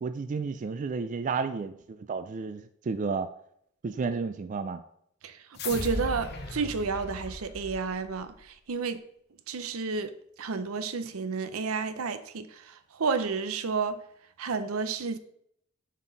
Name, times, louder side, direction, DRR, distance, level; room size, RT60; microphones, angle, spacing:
voice 1, 0.0-3.3 3.8-4.8, right 4 dB, 35° right, 0.3 m, -32 dB
sound 1, 5.6-8.3, left 2 dB, 50° left, 1.0 m, -37 dB
voice 2, 5.6-9.0 9.5-14.0 14.4-15.2, right 5 dB, 85° right, 0.6 m, -31 dB
7.2 x 4.4 x 3.9 m
head